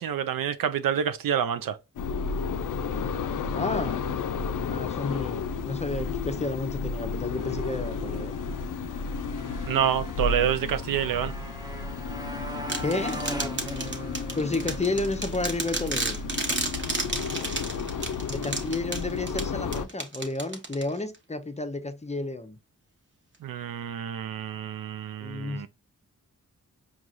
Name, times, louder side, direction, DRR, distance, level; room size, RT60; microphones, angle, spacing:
voice 1, 0.0-1.8 9.7-11.3 23.4-25.7, right 9 dB, 75° right, 0.5 m, -28 dB
sound 1, 2.0-19.9, left 5 dB, 65° left, 0.5 m, -32 dB
voice 2, 3.5-4.0 4.7-8.4 12.8-13.2 14.3-16.2 18.3-22.6 25.2-25.7, left 2 dB, 20° left, 0.6 m, -31 dB
Motorcycle, 7.1-19.2, right 1 dB, 10° right, 0.9 m, -42 dB
sound 2, 12.7-21.2, right 2 dB, 35° right, 1.1 m, -33 dB
4.6 x 2.4 x 2.6 m
cardioid pair, 40°, 34 cm